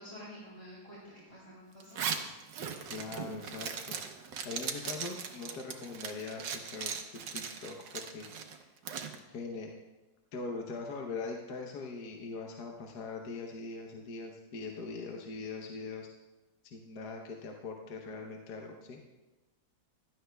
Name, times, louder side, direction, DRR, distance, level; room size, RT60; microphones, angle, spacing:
voice 1, 0.0-2.3, equal, 20° left, -7 dB, 2.8 m, -49 dB
Zipper (clothing), 1.8-9.2, right 7 dB, 75° right, 1.6 m, -39 dB
voice 2, 2.9-4.0 4.4-7.0 7.3-8.7 9.3-9.7 10.3-16.1 16.6-19.0, left 4 dB, 65° left, 1 dB, 1.5 m, -41 dB
16.0 x 12.5 x 2.3 m, 1.1 s
omnidirectional pair, 2.0 m